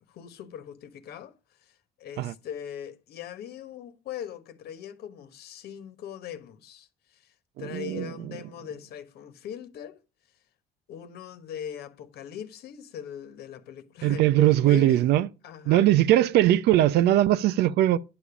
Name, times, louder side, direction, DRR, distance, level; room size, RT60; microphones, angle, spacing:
voice 1, 0.1-1.3 2.0-7.3 7.6-10.0 10.9-15.1 15.4-15.9, left 9 dB, 70° left, 1.2 m, -40 dB
voice 2, 7.6-8.1 14.0-15.3 15.7-18.0, right 13 dB, 75° right, 0.7 m, -20 dB
10.5 x 7.0 x 4.9 m
cardioid pair, 110°, 17 cm